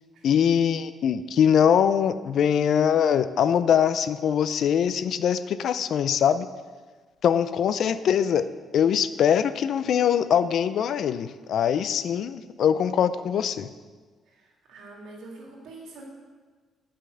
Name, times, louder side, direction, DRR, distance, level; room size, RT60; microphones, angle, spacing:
voice 1, 0.2-6.5 7.2-13.7, left 8 dB, 70° left, 13 dB, 0.5 m, -22 dB
voice 2, 14.3-16.0, right 2 dB, 80° right, -1 dB, 2.4 m, -45 dB
8.5 x 5.7 x 7.6 m, 1.4 s
cardioid pair, 90°, 0 cm